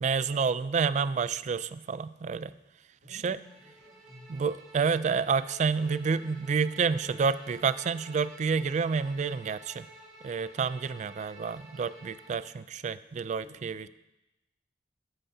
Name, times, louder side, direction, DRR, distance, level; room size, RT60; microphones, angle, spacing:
voice 1, 0.0-2.5 3.1-3.4 4.3-9.9 10.2-13.9, right 5 dB, 40° right, 15 dB, 0.3 m, -29 dB
voice 2, 3.0-4.3 13.4-13.9, equal, 65° right, -4 dB, 2.7 m, -55 dB
Bowed string instrument, 3.4-12.5, right 1 dB, 5° right, 3.3 m, -52 dB
14.0 x 8.7 x 2.8 m, 0.93 s
head